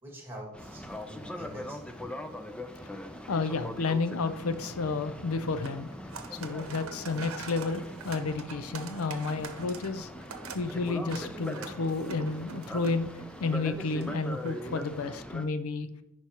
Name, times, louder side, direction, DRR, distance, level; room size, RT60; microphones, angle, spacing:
voice 1, 0.0-2.0, right 1 dB, 10° right, -1 dB, 2.0 m, -45 dB
Boat Water vehicle, 0.5-15.5, left 1 dB, 5° left, 0.4 m, -41 dB
sound 1, 0.6-15.1, right 5 dB, 75° right, 0.8 m, -47 dB
voice 2, 3.3-5.9 6.3-10.1 10.5-13.1 13.4-15.9, left 3 dB, 85° left, 12 dB, 0.5 m, -31 dB
10.5 x 4.6 x 2.9 m, 0.87 s
head